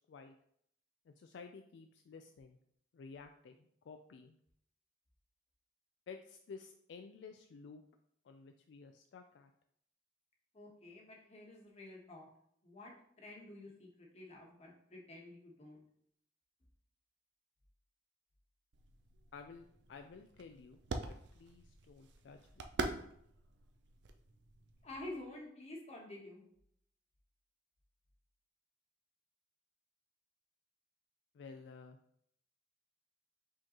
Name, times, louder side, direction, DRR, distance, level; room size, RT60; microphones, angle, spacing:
voice 1, 1.1-2.6 2.9-4.4 6.1-7.8 8.2-9.5 19.3-20.8 21.1-22.7 31.3-32.0, left 5 dB, 70° left, 5 dB, 0.3 m, -53 dB
voice 2, 10.5-12.3 12.6-15.8 24.8-26.4, left 1 dB, 35° left, -1 dB, 1.1 m, -50 dB
sound 1, 18.7-25.0, right 3 dB, 65° right, 0.5 m, -45 dB
4.9 x 3.7 x 2.9 m, 0.70 s
head